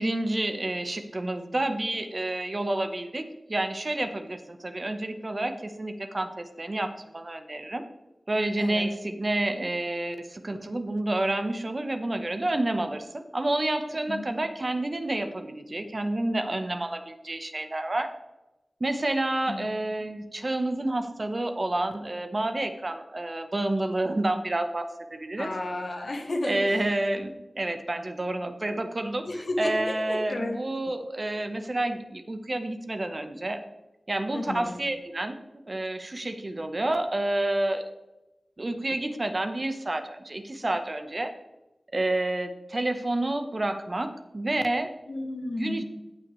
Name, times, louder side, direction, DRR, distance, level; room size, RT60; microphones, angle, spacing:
voice 1, 0.0-3.2 3.5-7.8 8.3-18.1 18.8-25.5 26.4-33.6 34.1-35.3 35.7-37.9 38.6-41.3 41.9-44.9 45.6-45.8, right 1 dB, 40° right, 7 dB, 0.9 m, -29 dB
voice 2, 13.9-14.3 19.5-19.7 25.4-26.6 29.3-30.6 34.3-34.7 45.1-45.8, left 2 dB, 65° left, 2 dB, 1.9 m, -32 dB
17.5 x 6.0 x 3.1 m, 1.0 s
wide cardioid pair, 85°, 0 cm